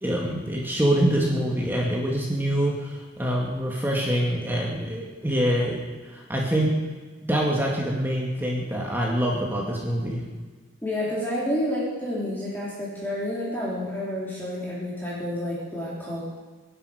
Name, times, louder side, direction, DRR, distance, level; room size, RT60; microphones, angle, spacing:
voice 1, 0.0-5.8 6.1-6.7 7.3-10.2, equal, 10° right, -3 dB, 2.2 m, -25 dB
voice 2, 10.8-16.2, left 1 dB, 10° left, -7 dB, 3.5 m, -29 dB
25.0 x 11.0 x 5.2 m, 1.3 s
head